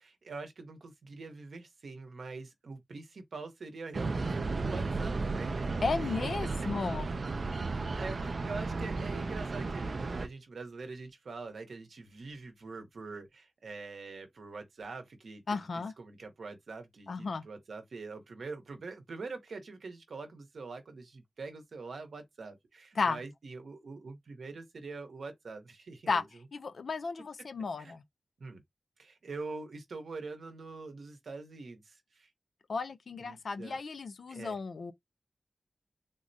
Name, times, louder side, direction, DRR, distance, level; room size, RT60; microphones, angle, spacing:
voice 1, 0.0-5.7 6.4-6.7 7.5-7.7 7.9-15.7 16.0-26.2 27.8-27.9 28.4-28.6 29.0-32.3 33.2-33.8 34.3-34.6, right 4 dB, 85° right, 0.8 m, -44 dB
sound 1, 3.9-10.3, right 3 dB, 60° right, 0.3 m, -34 dB
voice 2, 5.8-7.1 15.5-15.9 17.1-17.4 23.0-23.2 26.1-26.2 26.5-28.0 32.7-34.9, left 4 dB, 75° left, 0.4 m, -34 dB
3.7 x 2.0 x 2.6 m
wide cardioid pair, 85°, 0 cm